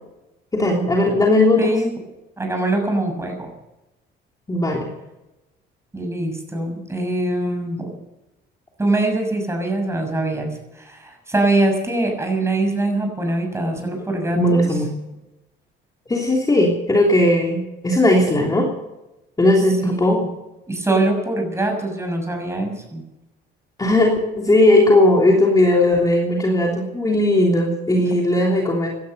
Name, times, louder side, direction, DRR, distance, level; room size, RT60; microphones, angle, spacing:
voice 1, 0.5-1.8 4.5-4.9 13.8-13.9 14.3-14.9 16.1-18.7 19.4-20.2 23.8-28.9, left 1 dB, 20° left, -1 dB, 3.2 m, -17 dB
voice 2, 1.6-1.9 2.4-3.5 5.9-7.9 8.8-14.6 19.8-20.3 20.7-23.0, right 2 dB, 15° right, 3 dB, 6.7 m, -23 dB
17.0 x 12.5 x 6.8 m, 0.96 s
cardioid pair, 115°, 20 cm